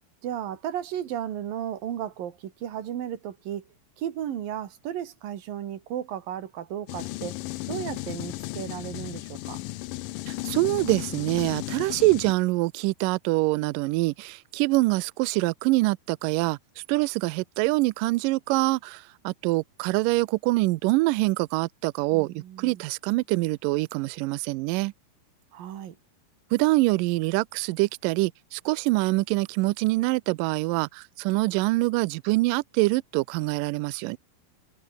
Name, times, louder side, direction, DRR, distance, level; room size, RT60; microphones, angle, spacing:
voice 1, 0.2-3.7 4.0-7.4 7.7-9.6 22.1-22.8 25.5-26.0, right 10 dB, 65° right, 3.5 m, -34 dB
sound 1, 6.9-12.3, left 18 dB, 80° left, 2.0 m, -35 dB
voice 2, 10.3-24.9 26.5-34.2, right 21 dB, 90° right, 1.9 m, -25 dB
omnidirectional pair, 4.6 m